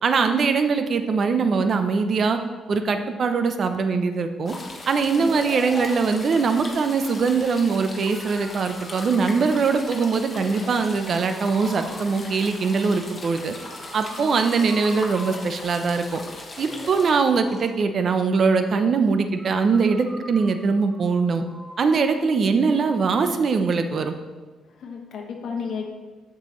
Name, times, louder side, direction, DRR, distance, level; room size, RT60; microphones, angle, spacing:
voice 1, 0.0-2.4 2.7-4.5 4.9-13.5 13.9-16.2 16.6-21.4 21.8-24.1, right 5 dB, 50° right, 8 dB, 0.7 m, -22 dB
sound 1, 4.5-17.1, left 2 dB, 30° left, 1.3 m, -39 dB
Breathing, 5.0-6.8 8.1-9.8 10.3-12.1 13.5-15.7 16.5-17.7 19.3-22.2, equal, 10° right, 1.6 m, -41 dB
voice 2, 24.8-25.9, left 5 dB, 70° left, 1 dB, 1.0 m, -33 dB
7.7 x 6.7 x 3.1 m, 1.3 s
cardioid pair, 90°, 0 cm